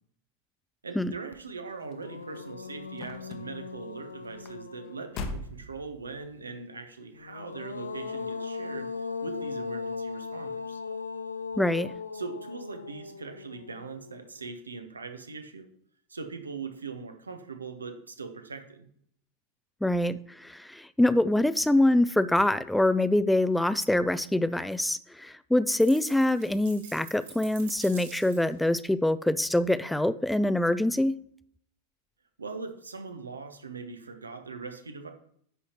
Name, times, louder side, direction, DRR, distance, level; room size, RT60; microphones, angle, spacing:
voice 1, 0.8-10.8 12.1-15.7 16.1-18.9 32.4-35.1, right 4 dB, 75° right, 7 dB, 1.0 m, -41 dB
sound 1, 1.3-1.4 1.8-5.5 7.1-14.4, left 5 dB, 75° left, 0.5 m, -38 dB
sound 2, 1.7-6.5 7.1-7.5 7.9-8.0, left 3 dB, 40° left, 1.0 m, -42 dB
voice 2, 11.6-11.9 19.8-31.1, left 1 dB, 5° left, 15 dB, 0.3 m, -25 dB
sound 3, 25.8-28.6, right 6 dB, 55° right, 1.8 m, -46 dB
9.8 x 5.6 x 3.0 m, 0.64 s
figure-of-eight pair, 90°, 0 cm